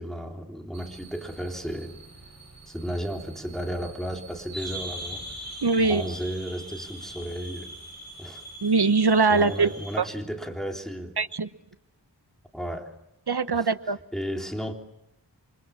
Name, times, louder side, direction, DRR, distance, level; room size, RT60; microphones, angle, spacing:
voice 1, 0.0-2.0 2.7-5.2 5.8-7.7 8.2-8.4 9.3-11.2 12.5-12.9 13.5-13.7 14.1-14.7, equal, ahead, 3.6 m, -34 dB
sound 1, 0.7-10.0, right 1 dB, 40° right, 7.3 m, -42 dB
voice 2, 5.6-6.0 8.6-9.7 11.2-11.5 13.3-14.0, right 4 dB, 70° right, 1.1 m, -22 dB
28.5 x 25.0 x 7.2 m
wide cardioid pair, 45°, 41 cm